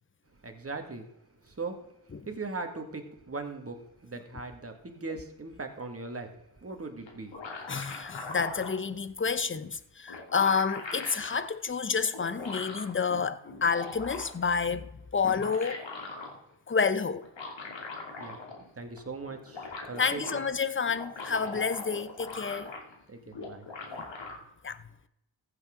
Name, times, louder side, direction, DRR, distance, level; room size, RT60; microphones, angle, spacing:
voice 1, 0.4-1.1 1.4-1.9 2.3-6.3 6.6-7.4 18.2-18.4 18.8-20.4 21.5-21.6 23.1-23.7, right 3 dB, 30° right, 2.0 m, -39 dB
sound 1, 7.1-8.8 9.7-9.8 10.1-11.4 12.1-12.9 13.5-14.5 15.1-16.3 17.2-18.7 19.0-19.1 19.3-20.4 20.8-23.0 23.3-24.3, left 3 dB, 80° left, 2.7 m, -40 dB
voice 2, 7.7-15.8 16.7-17.3 20.0-22.8 24.0-24.1 24.6-24.8, left 5 dB, 25° left, 0.7 m, -29 dB
15.0 x 8.4 x 3.7 m
cardioid pair, 75°, 44 cm